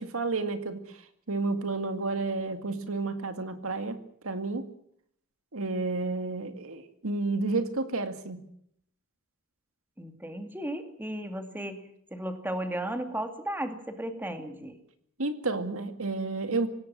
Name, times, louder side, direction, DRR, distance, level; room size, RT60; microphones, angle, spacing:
voice 1, 0.1-1.0 1.3-4.0 4.2-4.6 5.5-8.5 15.2-16.7, right 3 dB, 65° right, 8 dB, 2.2 m, -31 dB
voice 2, 10.0-14.8, right 1 dB, 10° right, 6 dB, 2.5 m, -35 dB
25.5 x 18.0 x 7.6 m, 0.70 s
head